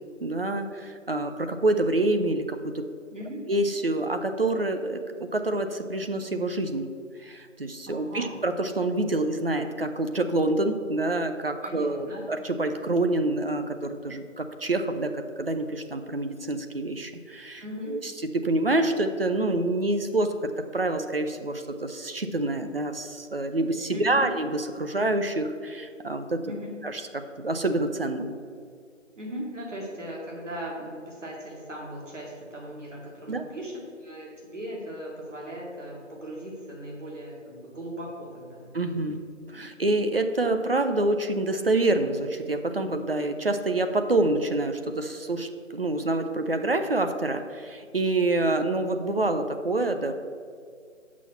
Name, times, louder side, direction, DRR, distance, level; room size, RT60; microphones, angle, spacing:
voice 1, 0.2-2.8 3.5-6.9 7.2-20.4 20.7-26.5 26.8-28.3 33.3-33.4 38.7-39.2 39.5-50.1, right 2 dB, 50° right, 7 dB, 0.7 m, -27 dB
voice 2, 3.1-3.4 7.9-8.3 11.6-12.2 17.6-18.0 23.9-24.3 26.4-26.8 29.2-39.1 39.5-39.7, equal, 70° right, -3 dB, 2.4 m, -38 dB
7.9 x 6.2 x 5.8 m, 2.1 s
figure-of-eight pair, 160°, 38 cm